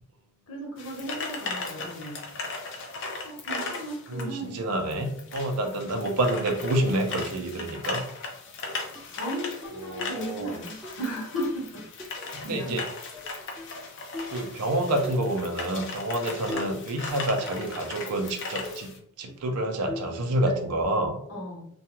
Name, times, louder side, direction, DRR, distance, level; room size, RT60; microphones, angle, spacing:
voice 1, 0.5-2.2 3.2-4.6 5.5-5.8 9.1-11.8 12.2-12.8 21.3-21.7, equal, 75° left, -2 dB, 1.0 m, -35 dB
sound 1, 0.8-19.0, left 3 dB, 55° left, 0.5 m, -37 dB
voice 2, 4.1-8.0 9.8-10.5 12.4-12.8 14.3-21.2, right 1 dB, 90° right, 4 dB, 0.5 m, -28 dB
sound 2, 9.0-9.1 9.6-9.8 10.2-10.3 10.6-11.0 11.4-12.1 13.1-13.8 14.1-14.4 15.0-15.2 16.3-16.9 17.2-17.9 18.2-18.3 18.6-18.9 19.3-19.4 19.9-20.2 20.5-20.9, left 2 dB, ahead, 0.3 m, -39 dB
2.3 x 2.2 x 2.9 m, 0.65 s
head